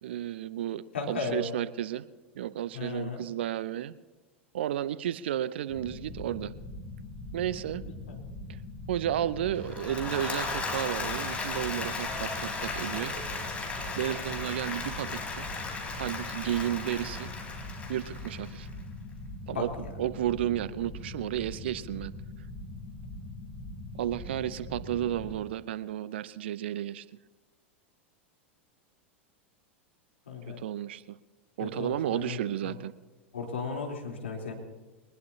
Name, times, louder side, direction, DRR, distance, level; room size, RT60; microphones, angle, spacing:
voice 1, 0.0-2.1 2.4-3.9 4.5-6.5 7.3-7.8 8.9-13.2 14.0-15.5 16.0-17.3 17.9-18.7 19.5-19.7 20.0-22.1 23.9-27.0 30.6-31.2 31.6-32.9, right 11 dB, 60° right, 18 dB, 0.6 m, -32 dB
voice 2, 0.9-1.5 2.7-3.2 8.1-8.2 19.5-19.9 30.3-30.6 31.6-32.8 33.3-34.5, left 4 dB, 75° left, 0 dB, 3.6 m, -35 dB
sound 1, 5.7-25.3, left 2 dB, 40° left, 4.3 m, -42 dB
Applause / Crowd, 9.6-18.7, left 3 dB, 20° left, 4.3 m, -36 dB
22.5 x 20.0 x 2.9 m, 1.3 s
figure-of-eight pair, 85°, 7 cm